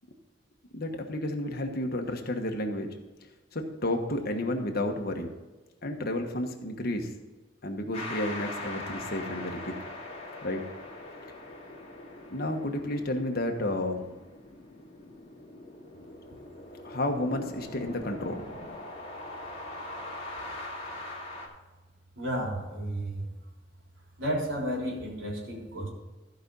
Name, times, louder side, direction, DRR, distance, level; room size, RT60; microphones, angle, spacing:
voice 1, 0.7-2.9 3.5-5.3 5.8-7.1 7.6-9.7 10.4-10.6 12.3-14.0 16.8-18.4, left 1 dB, 55° left, 4 dB, 1.3 m, -31 dB
sound 1, 7.9-21.5, left 2 dB, 35° left, 2.1 m, -42 dB
voice 2, 22.1-23.3 24.2-25.9, equal, 85° right, -2 dB, 3.6 m, -32 dB
14.0 x 5.2 x 5.4 m, 1.2 s
head